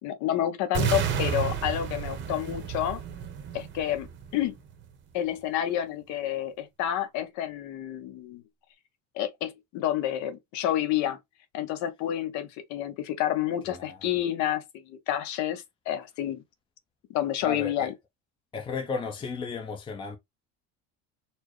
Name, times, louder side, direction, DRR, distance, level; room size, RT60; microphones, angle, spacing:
voice 1, 0.0-3.0 3.5-4.5 5.1-8.4 9.1-11.2 11.5-16.4 17.1-17.9, left 11 dB, 60° left, 0.8 m, -29 dB
sound 1, 0.7-4.8, right 7 dB, 35° right, 0.9 m, -31 dB
voice 2, 13.7-14.0 17.4-17.9 18.5-20.2, left 5 dB, 15° left, 0.6 m, -34 dB
4.3 x 2.1 x 3.0 m
cardioid pair, 140°, 32 cm